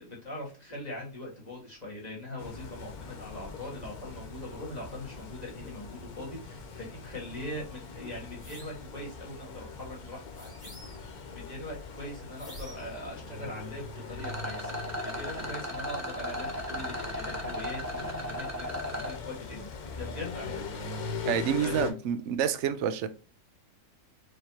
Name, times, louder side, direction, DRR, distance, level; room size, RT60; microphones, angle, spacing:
voice 1, 0.0-10.7 10.9-19.7 20.0-20.6 21.6-21.9, left 1 dB, 30° left, 1.8 m, -42 dB
sound 1, 2.4-21.9, left 5 dB, 90° left, 1.3 m, -41 dB
sound 2, 8.4-8.9 10.3-11.2 12.4-13.0, equal, 45° left, 2.3 m, -48 dB
Rattle, 14.2-19.2, equal, 20° right, 0.4 m, -36 dB
voice 2, 21.3-23.1, right 9 dB, 65° right, 0.8 m, -28 dB
4.9 x 3.1 x 2.8 m
omnidirectional pair, 1.5 m